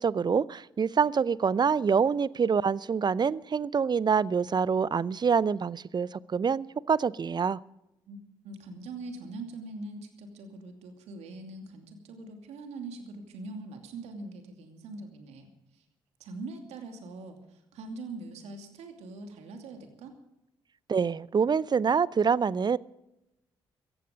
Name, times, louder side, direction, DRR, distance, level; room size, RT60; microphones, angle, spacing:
voice 1, 0.0-7.6 20.9-22.8, right 6 dB, 40° right, 21 dB, 0.6 m, -26 dB
voice 2, 8.4-15.8 16.2-20.2, right 2 dB, 70° right, 5 dB, 2.7 m, -42 dB
17.0 x 15.0 x 5.2 m, 0.88 s
hypercardioid pair, 45°, 12 cm